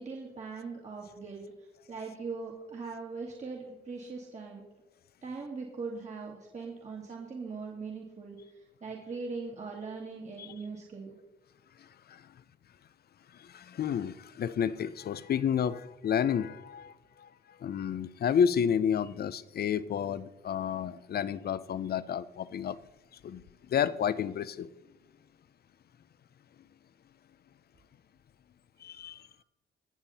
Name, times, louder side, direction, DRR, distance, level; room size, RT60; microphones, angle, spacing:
voice 1, 0.0-1.4 1.9-4.6 5.2-8.4 8.8-11.2 29.0-29.2, right 4 dB, 35° right, 2.2 m, -40 dB
voice 2, 11.8-12.3 13.3-17.3 17.6-22.8 23.2-23.4 23.7-24.7 28.8-29.3, left 8 dB, 55° left, 0.7 m, -31 dB
21.5 x 7.4 x 4.2 m
cardioid pair, 90°, 20 cm